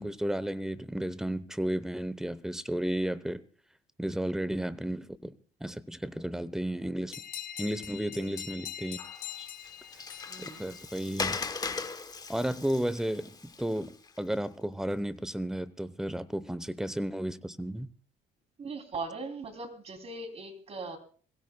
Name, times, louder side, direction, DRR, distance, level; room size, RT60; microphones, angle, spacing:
voice 1, 0.0-3.4 4.0-5.3 5.6-7.2 7.6-9.0 9.4-9.5 10.4-11.4 12.3-13.9 14.2-17.9, right 1 dB, 5° right, 0.8 m, -33 dB
sound 1, 7.1-11.4, left 11 dB, 75° left, 2.2 m, -43 dB
Water, 9.0-14.4, left 4 dB, 25° left, 0.9 m, -39 dB
voice 2, 10.3-10.7 18.6-21.0, right 3 dB, 35° right, 2.9 m, -39 dB
22.5 x 16.0 x 2.2 m
cardioid pair, 110°, 17 cm